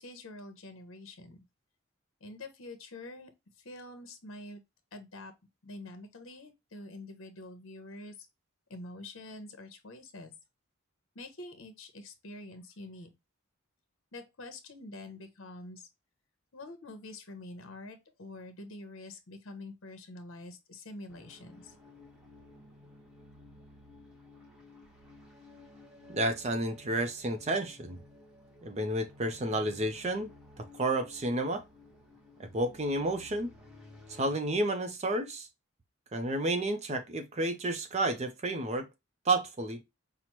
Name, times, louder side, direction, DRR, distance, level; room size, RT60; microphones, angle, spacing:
voice 1, 0.0-1.5 2.2-3.3 3.6-4.6 4.9-5.3 5.6-8.3 8.7-10.3 11.1-13.1 14.1-15.9 16.5-21.8, left 2 dB, 65° left, 0.8 m, -46 dB
sound 1, 21.1-34.4, left 2 dB, 5° right, 0.9 m, -55 dB
voice 2, 26.1-28.0 28.6-30.3 30.6-31.6 32.4-33.5 34.1-35.5 36.1-38.9 39.3-39.8, right 2 dB, 30° right, 0.5 m, -31 dB
5.7 x 2.0 x 2.9 m
head